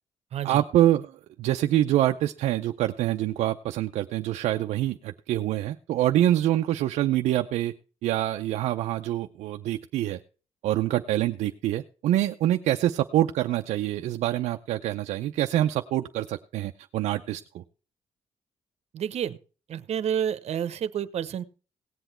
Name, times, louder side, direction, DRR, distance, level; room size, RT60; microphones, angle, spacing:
voice 1, 0.4-1.1 1.4-7.7 8.0-10.2 10.6-17.6, right 13 dB, 90° right, 5 dB, 0.5 m, -25 dB
voice 2, 18.9-19.4 19.7-21.4, right 9 dB, 70° right, 14 dB, 0.9 m, -29 dB
17.5 x 8.0 x 4.4 m, 0.37 s
cardioid pair, 75°, 11 cm